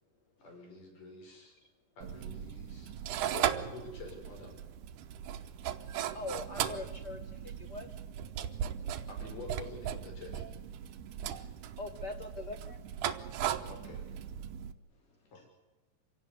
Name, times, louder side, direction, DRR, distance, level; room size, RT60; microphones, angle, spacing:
voice 1, 0.4-1.6 2.0-2.9 3.3-4.6 9.1-10.4 13.7-14.0, left 3 dB, 80° left, 7.1 m, -47 dB
sound 1, 2.0-14.7, right 10 dB, 80° right, 2.4 m, -38 dB
voice 2, 5.4-6.2 11.4-11.8 14.9-15.4, left 2 dB, 30° left, 3.0 m, -70 dB
voice 3, 6.1-7.9 11.8-12.8, left 3 dB, 65° left, 1.0 m, -42 dB
26.0 x 17.5 x 8.2 m
omnidirectional pair, 3.6 m